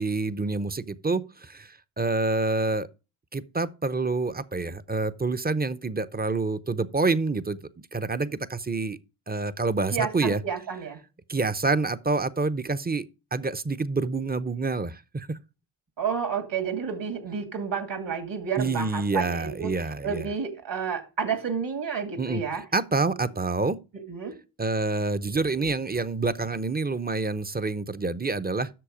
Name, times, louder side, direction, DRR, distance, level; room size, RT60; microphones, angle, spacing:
voice 1, 0.0-2.9 3.3-7.6 7.9-9.0 9.3-10.4 11.3-13.1 13.3-15.4 18.6-20.3 22.2-22.4 22.7-23.8 24.6-28.7, right 3 dB, 20° right, 0.8 m, -27 dB
voice 2, 9.9-11.0 16.0-19.7 20.0-22.6 23.9-24.3, right 6 dB, 60° right, 2.1 m, -30 dB
7.8 x 6.4 x 5.0 m
supercardioid pair, 40°, 50 cm